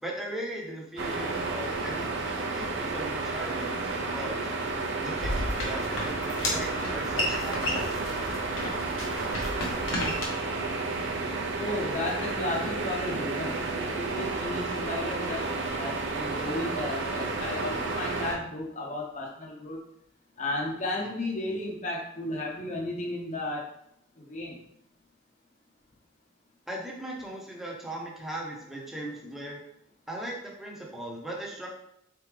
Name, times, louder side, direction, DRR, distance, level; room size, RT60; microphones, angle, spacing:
voice 1, 0.0-4.5 5.0-8.0 26.7-29.6 30.1-31.7, right 1 dB, ahead, -3 dB, 0.7 m, -38 dB
sound 1, 1.0-18.3, right 3 dB, 60° right, 0.6 m, -31 dB
sound 2, 5.2-10.3, left 1 dB, 70° left, 1.1 m, -33 dB
voice 2, 11.6-15.5 15.7-19.8 20.4-23.7 24.2-24.6, left 2 dB, 35° left, -2 dB, 0.8 m, -34 dB
4.0 x 3.4 x 3.3 m, 0.75 s
head